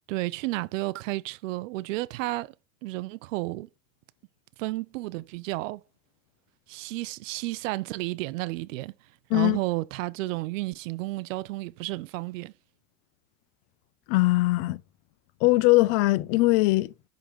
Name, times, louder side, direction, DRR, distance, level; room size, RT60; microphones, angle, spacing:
voice 1, 0.1-2.5 2.8-3.7 4.6-5.8 6.7-8.9 9.3-12.5, right 20 dB, 90° right, 0.5 m, -32 dB
voice 2, 14.1-14.8 15.4-16.9, left 20 dB, 50° left, 0.5 m, -21 dB
10.5 x 3.8 x 4.4 m
supercardioid pair, 155°, 37 cm